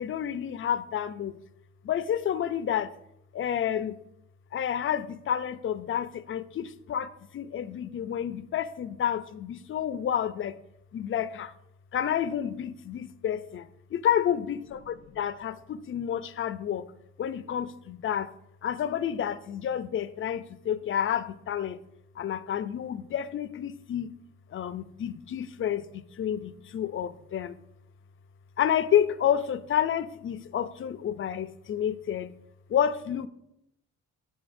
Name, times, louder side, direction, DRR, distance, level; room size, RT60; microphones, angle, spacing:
voice 1, 0.0-1.4 1.8-2.9 3.3-4.0 4.5-10.6 10.9-11.5 11.9-16.8 17.2-18.3 18.6-21.8 22.2-24.1 24.5-27.6 28.6-32.3 32.7-33.3, left 9 dB, 45° left, 14 dB, 0.5 m, -29 dB
11.5 x 5.5 x 2.6 m, 0.81 s
cardioid pair, 90°, 30 cm